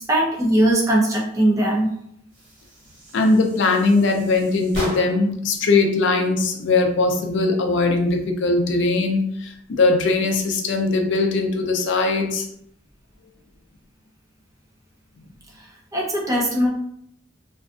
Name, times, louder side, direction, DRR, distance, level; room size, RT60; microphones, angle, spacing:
voice 1, 0.1-1.9 15.6-16.7, right 1 dB, 15° right, -2 dB, 0.5 m, -20 dB
sound 1, 2.3-5.4, equal, 55° right, 0.9 m, -36 dB
voice 2, 3.1-12.5, left 3 dB, 60° left, 3 dB, 0.4 m, -20 dB
2.5 x 2.3 x 2.3 m, 0.72 s
head